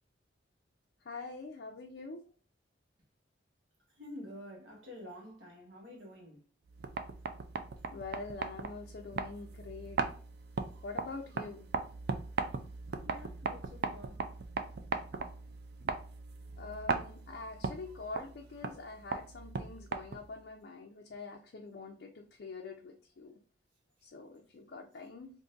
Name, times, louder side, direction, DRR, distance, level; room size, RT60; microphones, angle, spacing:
voice 1, 1.1-2.2 7.9-10.0 10.8-11.7 16.6-23.4 24.0-25.3, left 3 dB, 60° left, 0.4 m, -45 dB
voice 2, 3.9-6.5 13.0-14.3, left 1 dB, 90° right, 1.4 m, -49 dB
sound 1, 6.7-20.4, right 4 dB, 55° right, 0.3 m, -39 dB
3.8 x 2.6 x 2.5 m
head